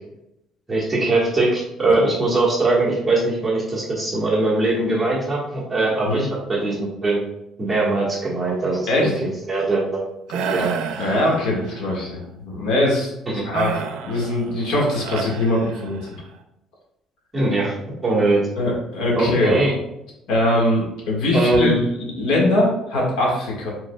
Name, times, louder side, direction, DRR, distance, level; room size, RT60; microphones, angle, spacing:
voice 1, 0.7-7.2 7.6-9.1 9.5-10.0 10.5-10.7 13.3-13.4 17.3-17.7 18.0-18.4 19.1-19.7 21.3-21.8, right 2 dB, 10° right, -6 dB, 1.4 m, -21 dB
sound 1, 10.3-11.9 13.5-16.2, right 6 dB, 85° right, 0.5 m, -30 dB
voice 2, 11.0-13.1 13.4-13.8 14.0-16.2 18.6-19.6 20.3-21.8 22.1-23.7, left 1 dB, 85° left, -3 dB, 1.6 m, -21 dB
5.0 x 4.0 x 2.3 m, 0.84 s
cardioid pair, 150°, 0 cm